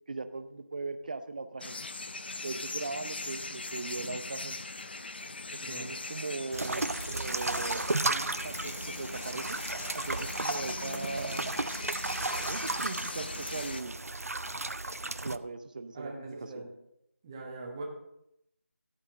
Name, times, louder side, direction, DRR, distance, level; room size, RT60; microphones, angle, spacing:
voice 1, 0.1-1.8 2.4-4.6 5.5-9.6 9.9-11.5 12.4-14.0 15.2-16.7, right 3 dB, 35° right, 10 dB, 0.7 m, -39 dB
sound 1, 1.6-13.8, left 3 dB, 45° left, 0.7 m, -40 dB
voice 2, 5.6-5.9 15.9-16.7 17.2-17.8, right 3 dB, 15° right, 1 dB, 1.3 m, -42 dB
sound 2, 6.5-15.4, right 2 dB, 85° right, 0.6 m, -34 dB
14.0 x 8.3 x 3.8 m, 0.81 s
figure-of-eight pair, 165°, 8 cm